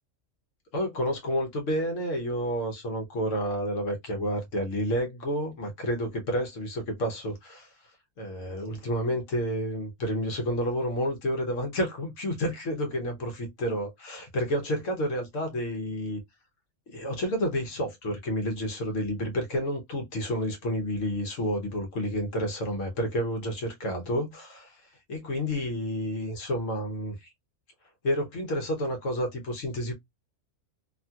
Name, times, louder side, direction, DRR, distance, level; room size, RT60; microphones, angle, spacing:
voice 1, 0.7-7.7 8.2-16.2 16.9-24.7 25.1-27.3 28.0-29.9, equal, 75° left, 1.3 m, -30 dB
2.9 x 2.8 x 2.3 m
omnidirectional pair, 1.3 m